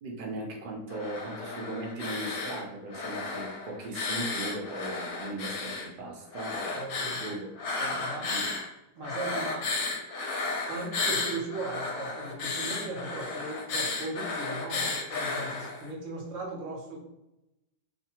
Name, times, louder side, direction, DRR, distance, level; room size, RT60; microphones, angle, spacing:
voice 1, 0.0-7.5 7.8-8.5, right 2 dB, 80° right, -1 dB, 0.4 m, -38 dB
sound 1, 0.9-2.6 2.9-5.9 6.3-8.7 9.0-15.9, left 3 dB, 70° left, 0.9 m, -33 dB
voice 2, 6.7-7.2 7.8-8.3 8.9-9.7 10.7-17.0, right 2 dB, 60° right, 0 dB, 0.9 m, -38 dB
2.5 x 2.5 x 2.8 m, 0.88 s
omnidirectional pair, 1.7 m